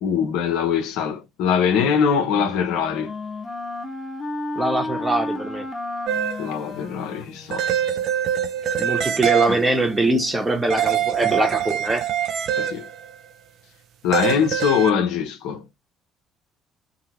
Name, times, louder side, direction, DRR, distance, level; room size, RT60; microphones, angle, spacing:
voice 1, 0.0-3.1 6.4-7.7 9.5-9.6 12.6-12.9 14.0-15.6, left 7 dB, 60° left, 0.5 m, -22 dB
Wind instrument woodwind instrument, 1.9-8.0, left 2 dB, 35° left, 0.9 m, -33 dB
voice 2, 4.6-5.7 8.8-12.1, right 2 dB, 15° right, 0.9 m, -22 dB
sound 1, 6.1-6.6 7.5-9.8 10.7-13.1 14.1-14.9, right 10 dB, 55° right, 0.4 m, -24 dB
2.7 x 2.5 x 2.8 m
figure-of-eight pair, 50°, 0 cm